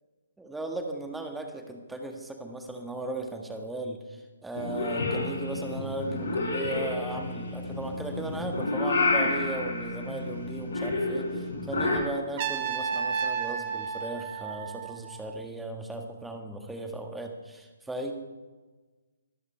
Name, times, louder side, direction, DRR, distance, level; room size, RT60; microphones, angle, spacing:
voice 1, 0.4-18.1, right 2 dB, 5° right, 4 dB, 1.8 m, -37 dB
Purr / Meow, 4.5-12.0, left 2 dB, 55° left, 6.5 m, -30 dB
Trumpet, 12.4-15.4, right 7 dB, 30° right, 1.3 m, -32 dB
24.5 x 15.0 x 3.5 m, 1.3 s
figure-of-eight pair, 135°, 0 cm